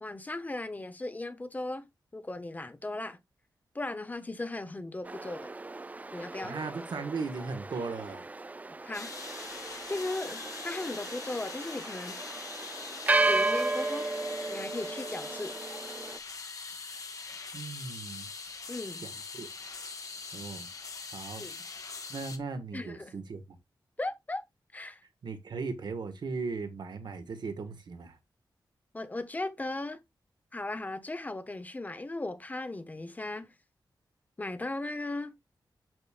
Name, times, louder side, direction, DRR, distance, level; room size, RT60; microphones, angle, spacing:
voice 1, 0.0-1.9 2.1-3.2 3.7-5.5 6.1-6.6 8.8-9.1 9.9-12.2 13.2-14.1 14.5-15.5 18.7-19.1 21.4-21.7 22.7-23.3 24.0-24.4 24.7-25.0 28.9-30.0 30.5-33.5 34.4-35.3, left 2 dB, 20° left, 0.8 m, -37 dB
sound 1, 5.1-16.2, right 2 dB, 20° right, 0.4 m, -34 dB
voice 2, 6.4-8.3 17.5-18.3 19.0-19.5 20.3-20.7 21.1-21.4 22.1-23.4 25.2-28.2, right 4 dB, 70° right, 1.4 m, -37 dB
sound 2, 8.9-22.4, left 4 dB, 45° left, 1.2 m, -42 dB
7.8 x 7.2 x 2.4 m
wide cardioid pair, 155°, 8 cm